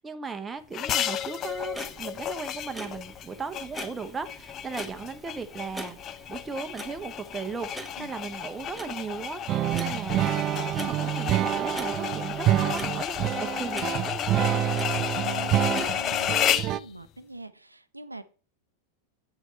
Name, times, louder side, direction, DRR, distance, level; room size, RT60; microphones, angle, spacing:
voice 1, 0.0-5.9 6.3-9.4 9.7-14.6, right 5 dB, 15° right, 7 dB, 0.9 m, -37 dB
sound 1, 0.7-16.8, left 10 dB, 30° left, 0.4 m, -32 dB
Clock, 1.4-16.6, equal, ahead, 1.2 m, -45 dB
sound 2, 9.5-16.8, right 13 dB, 35° right, 0.3 m, -27 dB
voice 2, 15.0-18.2, right 2 dB, 85° right, 11 dB, 0.6 m, -44 dB
8.1 x 6.3 x 4.4 m, 0.37 s
figure-of-eight pair, 90°, 0 cm